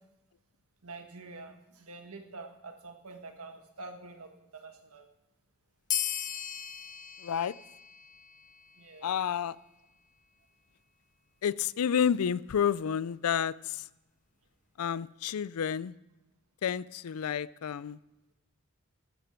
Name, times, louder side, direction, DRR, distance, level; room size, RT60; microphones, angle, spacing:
voice 1, 0.8-5.1 8.8-9.1, right 3 dB, 90° right, 5 dB, 1.6 m, -47 dB
sound 1, 5.9-8.9, left 10 dB, 35° left, 0.6 m, -37 dB
voice 2, 7.2-7.5 9.0-9.6 11.4-13.9 14.8-15.9 16.6-18.0, left 8 dB, 85° left, 20 dB, 0.4 m, -30 dB
14.0 x 12.5 x 4.5 m, 0.99 s
head